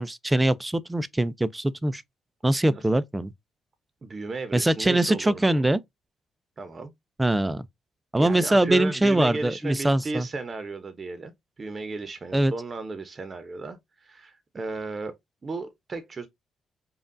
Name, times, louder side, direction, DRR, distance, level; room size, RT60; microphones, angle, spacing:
voice 1, 0.0-2.0 2.4-3.3 4.5-5.8 7.2-7.6 8.1-10.3 12.3-12.5, right 1 dB, 10° right, 0.4 m, -23 dB
voice 2, 4.0-5.6 6.6-6.9 8.2-11.3 11.6-15.2 15.4-16.3, right 3 dB, 35° right, 0.8 m, -34 dB
5.2 x 2.3 x 2.6 m
cardioid pair, 90°, 0 cm